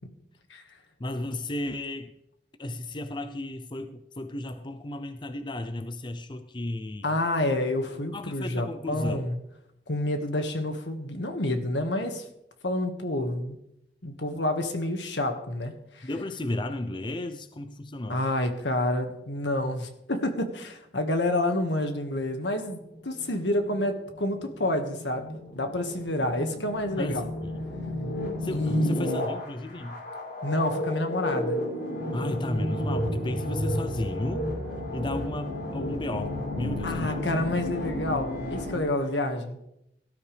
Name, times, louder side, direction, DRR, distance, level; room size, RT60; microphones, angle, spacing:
voice 1, 1.0-2.1 2.6-7.2 8.1-9.3 16.0-18.3 27.0-27.6 28.4-30.0 32.1-34.5 34.9-37.2, left 1 dB, 25° left, 9 dB, 0.6 m, -34 dB
voice 2, 7.0-9.4 9.9-12.2 12.6-13.6 14.0-16.1 18.1-27.3 28.5-29.3 30.4-31.6 36.8-39.6, left 1 dB, 80° left, 6 dB, 1.8 m, -29 dB
sound 1, 22.4-38.8, left 1 dB, 60° left, 5.8 m, -32 dB
17.5 x 12.5 x 3.4 m, 0.81 s
head